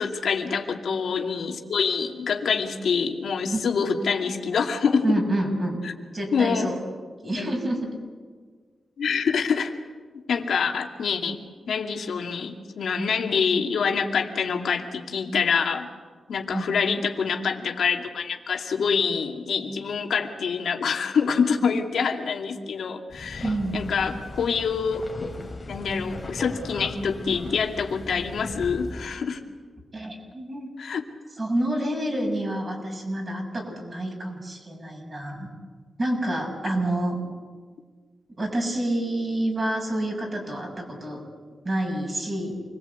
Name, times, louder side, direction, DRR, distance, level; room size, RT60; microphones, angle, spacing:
voice 1, 0.0-5.0 5.8-5.9 6.3-6.7 7.4-7.5 9.0-9.7 10.3-11.4 11.7-15.9 16.3-25.0 25.7-29.4 30.8-31.0, left 6 dB, 85° left, 2 dB, 2.5 m, -26 dB
voice 2, 5.0-5.8 6.1-6.7 7.2-7.8 16.5-16.7 23.4-23.8 29.9-30.7 31.4-35.5 36.0-37.2 38.4-41.2 41.6-42.6, right 1 dB, 30° right, 1 dB, 7.1 m, -28 dB
sound 1, 23.1-29.1, left 2 dB, 25° left, 3.3 m, -38 dB
28.0 x 21.5 x 8.3 m, 1.5 s
wide cardioid pair, 125°, 0 cm